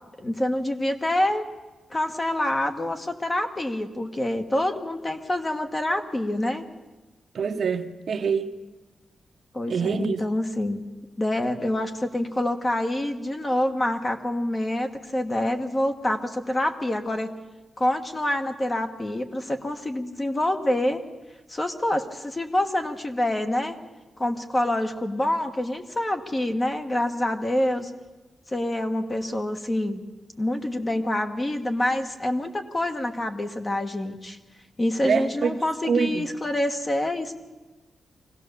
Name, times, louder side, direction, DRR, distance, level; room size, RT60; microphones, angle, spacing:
voice 1, 0.2-1.4 1.9-6.6 9.5-10.9 11.2-17.3 17.8-21.0 21.5-23.8 24.2-27.9 28.5-30.0 30.4-34.4 34.8-37.4, left 1 dB, 20° left, 1.3 m, -26 dB
voice 2, 7.3-8.5 9.7-10.2 35.0-36.3, right 6 dB, 60° right, 1.0 m, -25 dB
24.5 x 17.0 x 6.8 m
wide cardioid pair, 160°, 0 cm